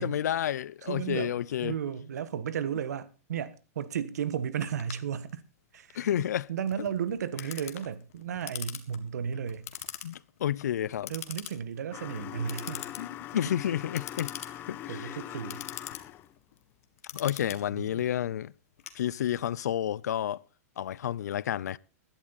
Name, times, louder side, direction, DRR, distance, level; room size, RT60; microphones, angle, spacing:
voice 1, 0.0-1.7 5.9-6.5 10.0-11.1 13.0-14.3 14.7-15.2 17.1-18.5 18.9-20.4 20.8-21.8, left 10 dB, 85° left, 0.6 m, -30 dB
voice 2, 0.8-5.4 5.7-6.1 6.5-9.7 11.1-12.8 13.3-13.4 14.9-15.6 17.6-18.1, right 8 dB, 85° right, 1.5 m, -34 dB
Clock, 4.6-19.6, left 11 dB, 60° left, 1.9 m, -44 dB
sound 1, 11.9-16.3, left 13 dB, 25° left, 0.6 m, -41 dB
16.5 x 12.0 x 4.1 m
supercardioid pair, 155°, 9 cm